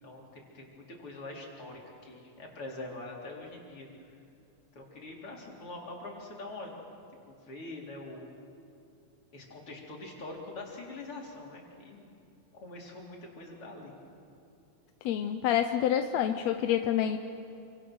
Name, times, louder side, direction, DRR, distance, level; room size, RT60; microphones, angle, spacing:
voice 1, 0.0-3.9 4.7-6.8 7.3-8.3 9.3-12.1 12.6-14.0, left 2 dB, 45° left, -2 dB, 4.6 m, -44 dB
voice 2, 15.0-17.2, left 10 dB, 70° left, 7 dB, 1.8 m, -27 dB
28.0 x 26.0 x 6.3 m, 2.6 s
omnidirectional pair, 3.6 m